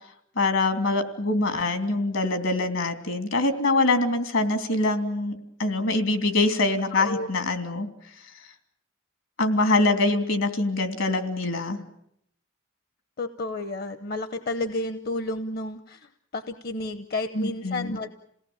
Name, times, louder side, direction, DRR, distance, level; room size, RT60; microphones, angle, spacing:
voice 1, 0.4-7.9 9.4-11.8 17.3-18.0, left 2 dB, 75° left, 8 dB, 3.0 m, -24 dB
voice 2, 6.9-7.3 13.2-18.1, left 2 dB, 50° left, 10 dB, 0.9 m, -31 dB
28.5 x 18.0 x 8.7 m, 0.73 s
head